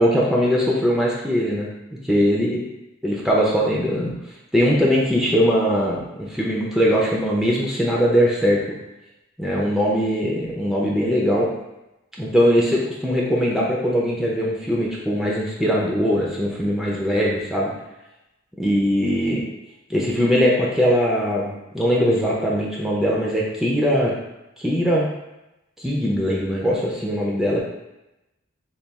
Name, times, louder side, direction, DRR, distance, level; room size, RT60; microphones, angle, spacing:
voice 1, 0.0-1.7 2.0-2.6 3.0-4.1 4.5-8.6 9.4-11.5 12.2-17.7 18.6-19.5 19.9-24.1 24.6-25.1 25.8-27.6, equal, ahead, -4 dB, 0.5 m, -21 dB
4.0 x 2.3 x 3.4 m, 0.93 s
head